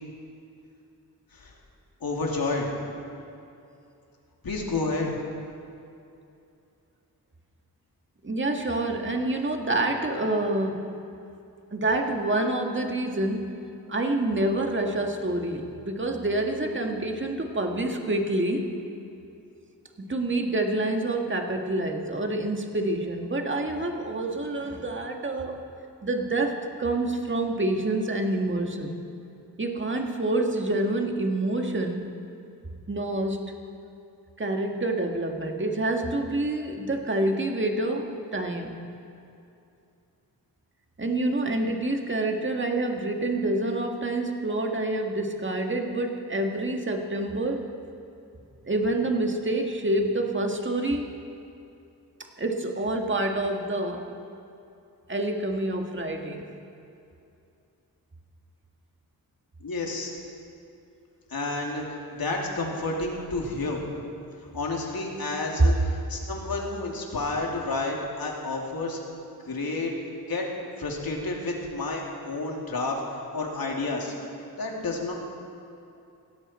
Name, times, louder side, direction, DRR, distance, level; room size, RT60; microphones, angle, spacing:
voice 1, 2.0-2.7 4.4-5.2 59.6-60.1 61.3-61.8 62.2-63.8 64.5-65.8 66.1-69.0 69.5-69.9 70.3-70.4 70.8-74.1 74.6-75.1, left 3 dB, 70° left, -1 dB, 2.8 m, -30 dB
voice 2, 8.2-10.9 11.7-13.6 13.9-18.7 20.0-25.6 26.0-29.0 29.6-32.1 32.9-33.4 34.4-38.8 41.0-47.7 48.6-51.1 52.4-54.1 55.1-56.5, right 2 dB, 30° right, 3 dB, 1.8 m, -27 dB
17.5 x 16.0 x 4.4 m, 2.7 s
cardioid pair, 70°, 37 cm